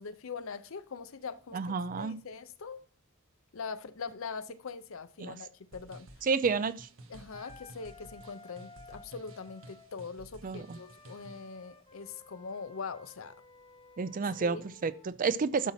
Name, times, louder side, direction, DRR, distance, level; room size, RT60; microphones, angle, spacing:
voice 1, 0.0-2.8 3.5-6.2 7.1-13.4 14.4-14.6, left 5 dB, 70° left, 0.6 m, -42 dB
voice 2, 1.5-2.2 5.2-5.4 6.2-6.9 10.4-10.8 14.0-15.7, right 5 dB, 40° right, 0.4 m, -30 dB
sound 1, 5.7-11.5, right 1 dB, 65° right, 1.2 m, -53 dB
Wind instrument woodwind instrument, 7.3-9.9 10.5-15.1, left 3 dB, 25° left, 1.0 m, -55 dB
12.0 x 4.3 x 5.7 m
head